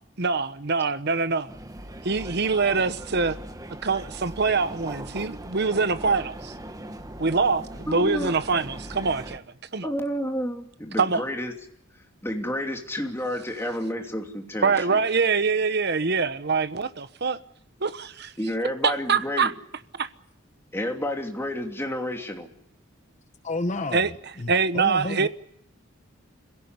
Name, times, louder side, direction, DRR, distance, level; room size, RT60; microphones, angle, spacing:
voice 1, 0.2-1.5 2.0-3.4 3.8-6.5 7.2-9.4 9.7-9.9 11.0-11.2 14.6-17.4 17.8-18.3 18.8-19.5 20.0-20.1 23.9-24.1 24.5-25.3, right 4 dB, 55° right, 1.1 m, -24 dB
sound 1, 1.5-9.4, right 1 dB, 20° right, 1.5 m, -39 dB
voice 2, 7.9-8.3 9.8-11.5 12.2-15.0 18.4-19.5 20.7-22.5, left 1 dB, 15° left, 3.0 m, -30 dB
voice 3, 23.4-25.3, left 2 dB, 35° left, 0.9 m, -31 dB
26.0 x 17.0 x 9.7 m
head